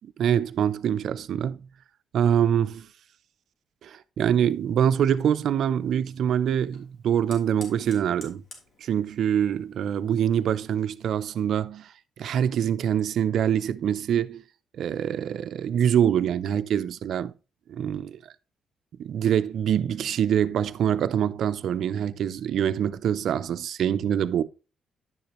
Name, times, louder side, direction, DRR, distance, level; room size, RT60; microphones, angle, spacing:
voice 1, 0.0-1.7 2.1-2.9 3.8-8.4 8.8-14.4 14.7-17.3 17.7-18.3 19.0-24.4, right 9 dB, 70° right, 0.5 m, -25 dB
Fire, 4.4-11.6, left 2 dB, 60° left, 3.2 m, -53 dB
10.5 x 6.6 x 3.0 m
cardioid pair, 90°, 0 cm